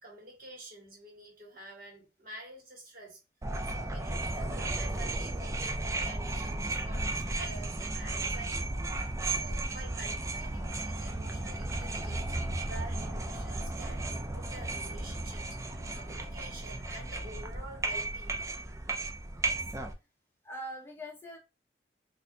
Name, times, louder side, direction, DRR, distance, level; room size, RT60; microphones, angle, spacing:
voice 1, 0.0-3.2 3.6-15.6 15.9-18.6, right 2 dB, 55° right, 1.5 m, -49 dB
sound 1, 3.4-19.9, right 2 dB, 15° right, 0.3 m, -34 dB
voice 2, 20.4-21.4, equal, 15° left, 0.7 m, -43 dB
4.2 x 2.6 x 2.2 m
head